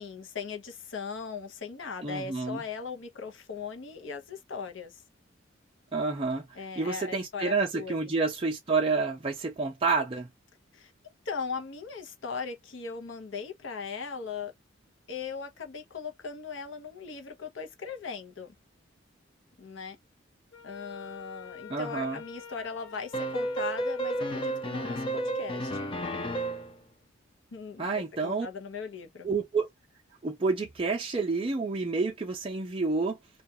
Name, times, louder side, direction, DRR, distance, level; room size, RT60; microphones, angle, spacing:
voice 1, 0.0-5.0 6.5-8.1 10.7-10.9 11.3-14.5 15.1-18.5 19.6-20.0 20.6-25.9 27.5-29.3, left 5 dB, 65° left, 0.7 m, -39 dB
voice 2, 2.0-2.6 5.9-6.5 6.8-10.3 21.7-22.2 27.8-28.5 29.2-29.7 30.2-33.2, right 4 dB, 25° right, 0.5 m, -29 dB
Wind instrument woodwind instrument, 20.5-25.2, left 7 dB, 90° left, 1.3 m, -47 dB
sound 1, 23.1-26.8, right 1 dB, 25° left, 0.6 m, -32 dB
2.3 x 2.3 x 2.6 m
head